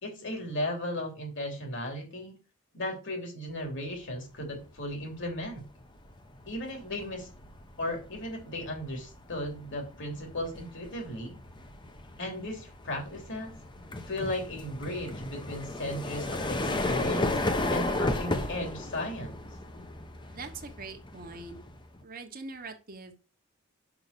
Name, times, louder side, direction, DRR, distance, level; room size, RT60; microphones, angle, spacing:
voice 1, 0.0-2.4 2.7-5.6 6.5-7.3 7.8-11.4 12.2-13.5 14.1-17.3 17.7-19.4, left 1 dB, 60° left, 2 dB, 3.2 m, -36 dB
sound 1, 4.6-4.9 5.3-22.0, left 2 dB, 20° left, 0.9 m, -35 dB
voice 2, 20.3-21.6 22.0-23.1, right 3 dB, 40° right, 6 dB, 1.2 m, -42 dB
6.0 x 5.5 x 6.8 m, 0.35 s
head